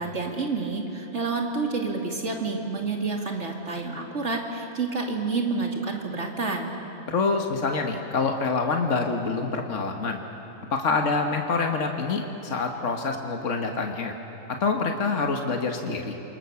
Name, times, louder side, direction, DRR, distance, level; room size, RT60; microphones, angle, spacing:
voice 1, 0.0-6.7, right 4 dB, 65° right, 1 dB, 2.8 m, -29 dB
voice 2, 7.1-10.2 10.7-14.1 14.5-16.1, left 4 dB, 75° left, 3 dB, 1.8 m, -26 dB
28.5 x 24.5 x 7.1 m, 2.9 s
omnidirectional pair, 1.3 m